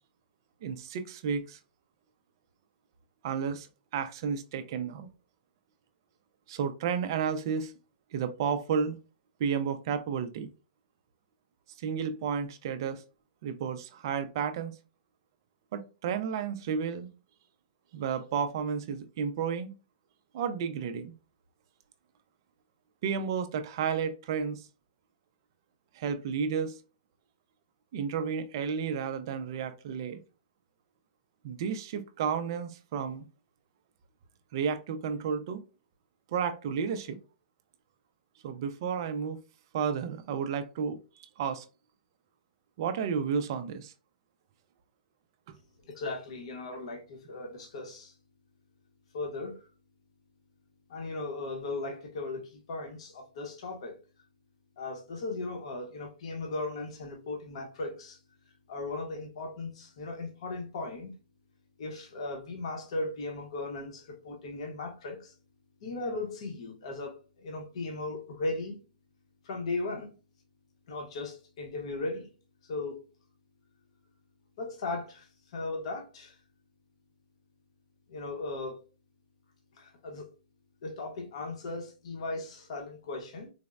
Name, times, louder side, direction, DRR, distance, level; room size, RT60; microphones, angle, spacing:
voice 1, 0.6-1.6 3.2-3.7 3.9-5.1 6.5-7.7 8.1-9.0 9.4-10.5 11.8-13.0 13.4-14.7 15.7-17.1 17.9-19.7 20.3-21.1 23.0-24.7 25.9-26.8 27.9-30.2 31.4-33.3 34.5-35.6 36.3-37.2 38.4-39.4 39.7-41.0 41.4-41.7 42.8-43.9, right 6 dB, 30° right, 0.3 m, -32 dB
voice 2, 45.9-48.1 49.1-49.6 50.9-54.0 54.8-58.2 58.7-61.1 61.8-65.3 65.8-68.8 69.4-70.1 70.9-72.3 72.7-73.0 74.6-76.4 78.1-78.8 79.8-80.3 80.8-83.5, left 2 dB, 40° left, 0.7 m, -37 dB
4.0 x 2.0 x 2.3 m
hypercardioid pair, 175°, 5 cm